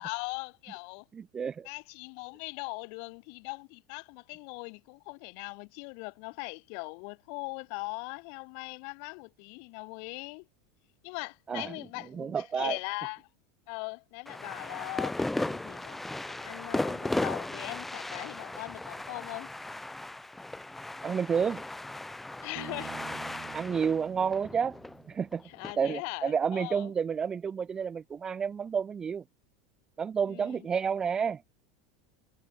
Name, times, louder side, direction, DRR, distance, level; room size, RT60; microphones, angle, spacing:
voice 1, 0.0-1.1 1.6-10.5 11.0-13.2 13.7-16.0 16.3-19.5 22.4-22.9 25.4-26.9 30.2-30.7, left 40 dB or more, 60° left, 4.0 m, -40 dB
voice 2, 1.1-1.7 11.5-11.7 12.1-12.8 21.0-21.6 23.5-24.8 25.1-25.4 25.8-29.2 30.0-31.4, right 6 dB, 25° right, 1.1 m, -30 dB
sound 1, 14.3-25.7, left 2 dB, 5° left, 1.6 m, -36 dB
Bass guitar, 22.6-26.1, right 13 dB, 45° right, 6.1 m, -49 dB
hypercardioid pair, 95°, 3 cm